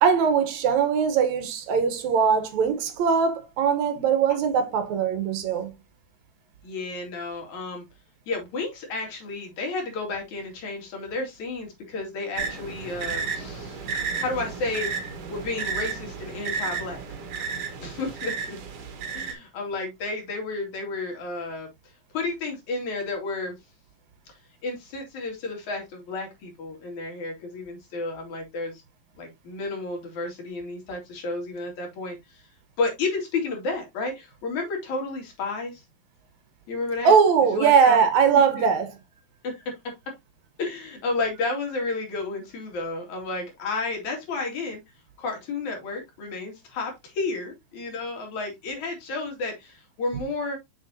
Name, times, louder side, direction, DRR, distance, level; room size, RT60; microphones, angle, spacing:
voice 1, 0.0-5.7 37.0-38.9, right 6 dB, 75° right, 2.4 m, -21 dB
voice 2, 6.6-7.9 8.3-14.9 15.3-17.0 17.8-18.6 19.1-21.7 22.1-23.6 24.3-24.4 24.6-28.8 29.2-32.4 32.8-35.8 36.7-37.1 37.5-38.0 38.3-38.7 39.4-39.6 40.6-44.8 45.2-50.6, left 3 dB, 75° left, 3.8 m, -32 dB
sound 1, 12.4-19.3, right 5 dB, 60° right, 2.2 m, -32 dB
6.9 x 6.6 x 2.7 m
omnidirectional pair, 3.3 m